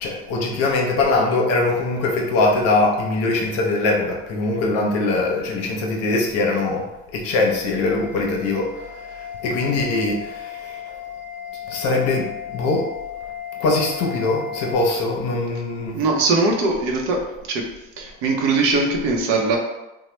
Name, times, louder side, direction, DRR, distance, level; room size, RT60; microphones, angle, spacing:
voice 1, 0.0-11.0 11.7-12.9 13.6-16.0, left 2 dB, 55° left, 1 dB, 0.7 m, -22 dB
sound 1, 7.6-14.7, left 9 dB, 20° right, 0.9 m, -35 dB
voice 2, 15.9-17.7 18.0-19.6, right 3 dB, 70° right, 1 dB, 0.7 m, -21 dB
2.9 x 2.1 x 3.2 m, 0.99 s
cardioid pair, 140°, 30 cm